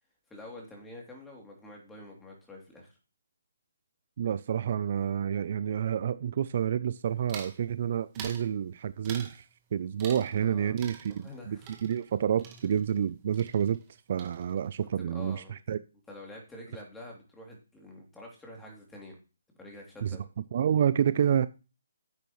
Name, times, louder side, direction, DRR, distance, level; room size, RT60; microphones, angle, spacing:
voice 1, 0.3-3.0 10.4-10.8 11.1-11.7 15.0-15.5 16.1-19.2 19.6-20.3, left 1 dB, 5° left, 2.8 m, -47 dB
voice 2, 4.2-9.4 9.7-13.8 14.1-15.8 20.0-20.2 20.5-21.5, right 9 dB, 45° right, 0.4 m, -29 dB
sound 1, 7.3-7.6 8.1-8.5 9.0-9.4 10.0-10.5 10.8-13.1 13.3-13.9 14.2-14.7, right 7 dB, 20° right, 1.7 m, -46 dB
10.5 x 8.3 x 3.1 m
hypercardioid pair, 155°, 0 cm